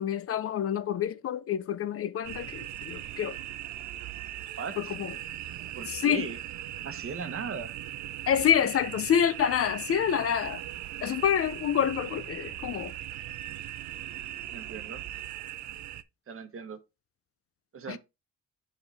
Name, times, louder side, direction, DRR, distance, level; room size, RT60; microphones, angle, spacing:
voice 1, 0.0-3.4 4.8-5.1 5.9-6.3 8.3-10.6 11.0-12.9 17.9-18.0, left 9 dB, 50° left, 0.5 m, -27 dB
sound 1, 2.2-16.0, right 13 dB, 70° right, 0.5 m, -39 dB
voice 2, 4.6-4.9 5.7-6.4 6.8-7.8 14.5-15.0 16.3-16.8 17.7-18.0, right 5 dB, 45° right, 1.1 m, -38 dB
7.5 x 4.8 x 3.4 m
cardioid pair, 90°, 30 cm